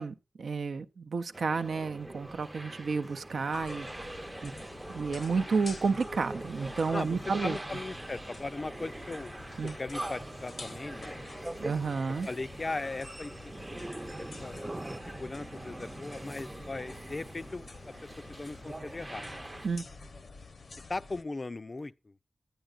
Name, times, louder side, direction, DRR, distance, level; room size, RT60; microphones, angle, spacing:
voice 1, 0.0-3.9 4.4-4.5 4.9-7.6 9.6-9.7 11.6-12.3 19.6-19.8, right 4 dB, 90° right, 0.5 m, -31 dB
sound 1, 1.3-19.7, right 1 dB, 20° right, 0.5 m, -43 dB
sound 2, 3.5-21.2, left 4 dB, 75° left, 0.8 m, -49 dB
voice 2, 7.4-9.3 9.8-11.5 12.2-13.5 14.2-14.9 15.2-17.9 18.4-19.3 20.9-22.1, left 3 dB, 40° left, 0.4 m, -38 dB
10.0 x 9.0 x 2.4 m
wide cardioid pair, 80°, 0 cm